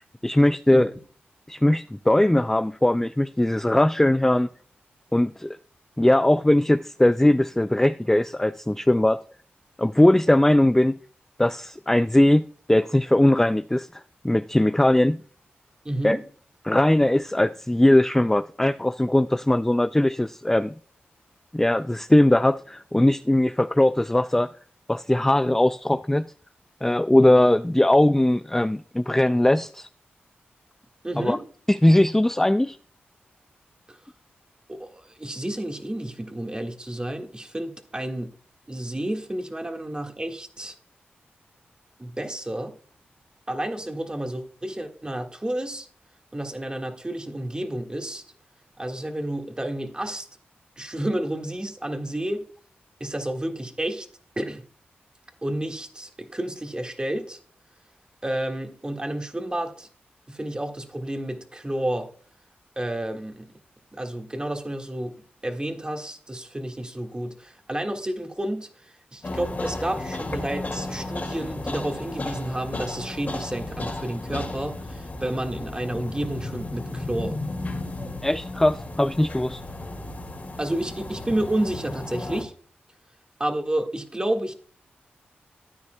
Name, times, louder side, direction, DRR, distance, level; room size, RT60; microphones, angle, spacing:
voice 1, 0.2-0.9 1.5-4.5 5.1-5.6 6.0-9.2 9.8-10.9 11.4-15.2 16.0-16.2 16.6-20.7 21.5-24.5 24.9-26.3 26.8-29.9 31.2-31.4 31.7-32.8 78.2-79.6, left 1 dB, 10° left, 0.3 m, -20 dB
voice 2, 15.8-16.2 31.0-31.4 33.9-34.0 34.7-38.3 38.7-40.7 42.0-42.7 43.5-45.9 46.3-48.2 48.8-50.3 50.8-52.4 53.0-54.1 54.3-54.6 55.4-57.4 58.2-59.9 60.3-62.1 62.7-63.5 63.9-65.1 65.4-77.4 80.6-82.5 83.4-84.5, right 1 dB, 20° right, 1.7 m, -30 dB
sound 1, 69.2-82.4, left 2 dB, 45° left, 2.2 m, -34 dB
13.5 x 9.5 x 2.2 m
cardioid pair, 45°, 4 cm